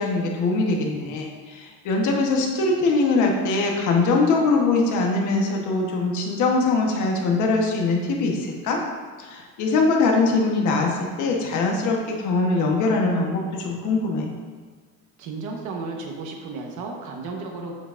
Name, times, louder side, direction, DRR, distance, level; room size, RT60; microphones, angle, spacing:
voice 1, 0.0-8.8 9.2-14.3, left 3 dB, 60° left, 0 dB, 1.2 m, -22 dB
voice 2, 15.2-17.8, right 3 dB, 60° right, 1 dB, 1.2 m, -33 dB
7.9 x 7.5 x 2.5 m, 1.5 s
cardioid pair, 165°, 33 cm